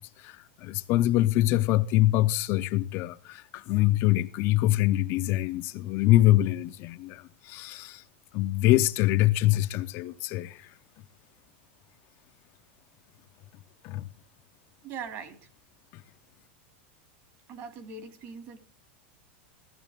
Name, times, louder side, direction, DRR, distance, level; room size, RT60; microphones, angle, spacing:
voice 1, 0.2-8.0 8.3-10.7 13.8-14.1 15.9-16.0, left 16 dB, 40° left, 0.7 m, -24 dB
voice 2, 14.8-15.5 17.5-18.6, right 5 dB, 40° right, 2.7 m, -41 dB
16.0 x 14.5 x 3.6 m
supercardioid pair, 150°, 6 cm